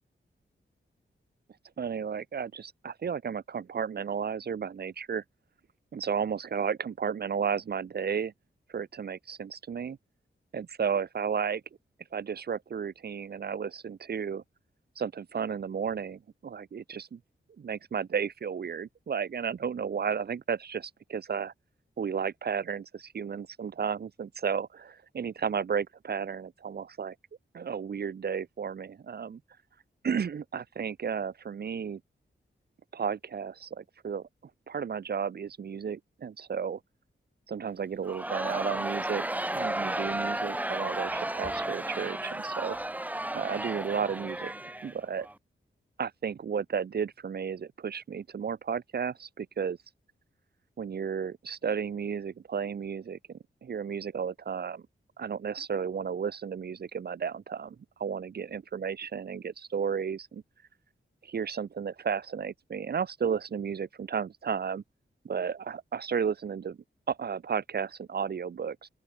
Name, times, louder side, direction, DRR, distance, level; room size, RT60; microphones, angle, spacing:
voice 1, 1.8-5.2 5.9-8.3 8.7-10.0 10.5-11.6 12.1-14.4 15.0-17.2 17.6-21.5 22.0-27.1 27.5-29.4 30.0-32.0 32.9-34.3 34.7-36.8 37.5-42.8 43.3-44.5 44.8-45.3 46.0-49.8 50.8-54.8 55.2-60.4 61.2-64.8 65.2-66.8 67.1-68.9, right 7 dB, 50° right, 0.6 m, -33 dB
Crowd, 38.1-45.3, right 1 dB, 10° right, 0.6 m, -33 dB
open air
wide cardioid pair, 100°, 21 cm